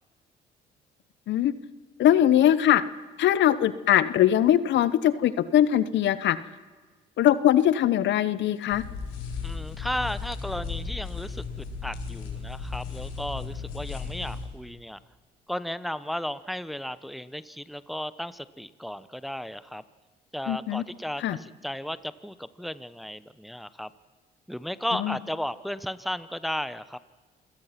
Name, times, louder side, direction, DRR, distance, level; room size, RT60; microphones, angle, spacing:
voice 1, 2.0-2.8 3.2-6.4 7.2-8.8 20.5-20.8 21.2-21.4 25.0-25.2, left 11 dB, 70° left, 16 dB, 1.0 m, -21 dB
sound 1, 8.7-14.4, left 5 dB, 85° left, 4.5 m, -35 dB
voice 2, 9.4-15.0 15.5-19.8 20.3-23.9 24.5-27.0, equal, ahead, 15 dB, 0.9 m, -34 dB
27.5 x 17.5 x 5.9 m, 1.4 s
supercardioid pair, 70°, 20 cm